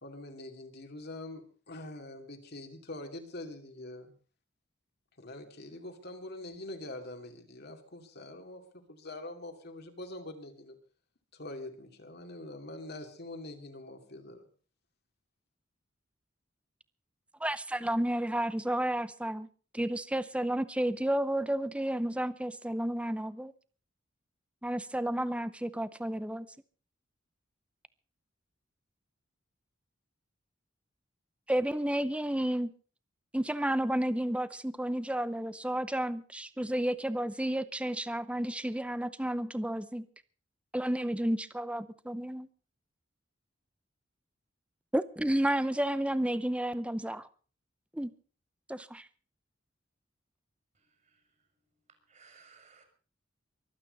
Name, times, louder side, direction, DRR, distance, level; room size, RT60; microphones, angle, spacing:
voice 1, 0.0-4.1 5.2-10.8 11.3-14.4, left 2 dB, 60° left, 2.5 m, -44 dB
voice 2, 17.4-19.5 19.7-23.5 24.6-26.5 31.5-32.7 33.3-40.0 40.7-42.5 44.9-47.3 47.9-48.1 48.7-49.1, right 1 dB, 5° right, 0.6 m, -31 dB
voice 3, 50.7-51.2 52.1-52.8, right 5 dB, 45° right, 5.1 m, -60 dB
24.0 x 9.0 x 5.3 m
head